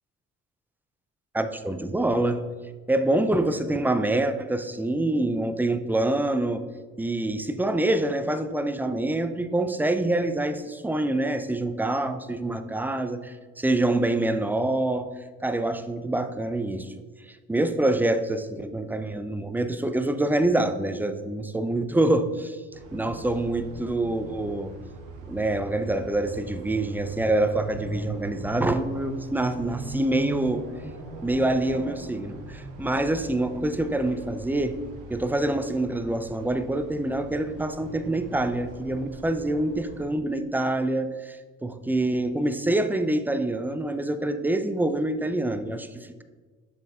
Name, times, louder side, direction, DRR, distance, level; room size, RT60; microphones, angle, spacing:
voice 1, 1.3-2.5 2.9-6.6 7.0-15.1 15.4-16.9 17.3-22.6 22.9-24.7 25.3-30.7 31.2-34.8 35.1-46.2, right 1 dB, 5° right, 10 dB, 0.4 m, -26 dB
sound 1, 22.7-40.1, right 3 dB, 90° right, 0.9 m, -40 dB
6.5 x 4.3 x 3.6 m, 1.4 s
supercardioid pair, 60°, 35 cm